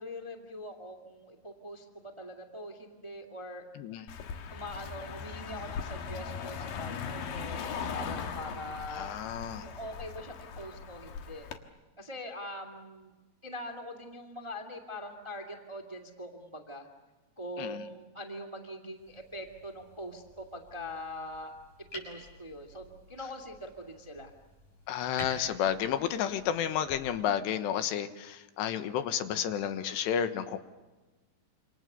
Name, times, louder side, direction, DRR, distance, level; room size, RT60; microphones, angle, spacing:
voice 1, 0.0-3.7 4.5-9.1 9.6-11.5 12.0-13.1 13.4-16.9 17.4-21.6 21.9-24.3, left 1 dB, 10° right, 5 dB, 1.2 m, -43 dB
Car passing by, 4.1-11.6, left 6 dB, 65° left, 3.0 m, -39 dB
voice 2, 8.9-9.7 17.6-17.8 24.9-30.6, left 9 dB, 90° left, 10 dB, 3.5 m, -31 dB
sound 1, 18.9-27.0, left 1 dB, 45° left, 8.0 m, -51 dB
27.5 x 27.0 x 6.9 m, 1.2 s
omnidirectional pair, 4.8 m